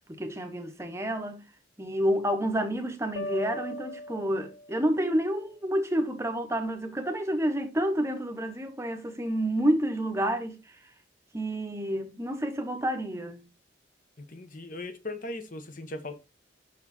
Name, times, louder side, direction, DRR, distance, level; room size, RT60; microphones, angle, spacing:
voice 1, 0.1-1.4 1.8-10.8 11.3-13.5, right 1 dB, 15° right, 0.9 m, -29 dB
sound 1, 3.2-5.0, left 1 dB, 80° left, 0.5 m, -38 dB
voice 2, 14.2-16.2, left 2 dB, 45° left, 0.9 m, -38 dB
6.0 x 4.7 x 4.1 m
head